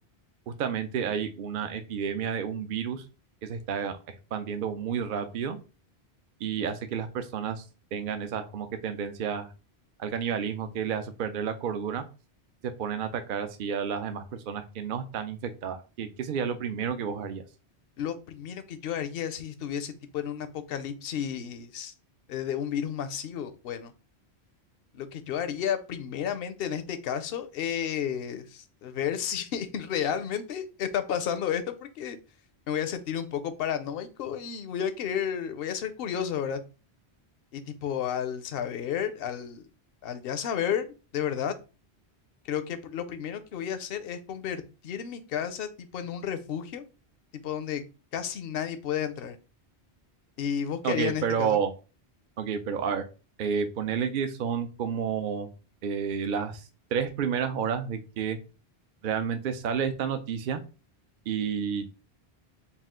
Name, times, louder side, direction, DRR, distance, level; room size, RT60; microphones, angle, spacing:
voice 1, 0.5-3.0 3.4-5.6 6.4-7.6 7.9-9.5 10.0-12.0 12.8-17.4 50.8-51.7 52.4-53.0 53.4-55.5 55.8-58.4 59.0-60.6 61.3-61.9, right 7 dB, 60° right, 8 dB, 0.6 m, -30 dB
voice 2, 18.0-21.9 22.3-23.9 24.9-32.2 32.7-36.6 37.5-39.6 40.0-40.9 41.1-41.5 42.5-46.8 47.4-47.8 48.1-49.4 50.4-51.6, left 8 dB, 70° left, 9 dB, 0.8 m, -32 dB
4.2 x 2.3 x 3.6 m, 0.33 s
omnidirectional pair, 1.1 m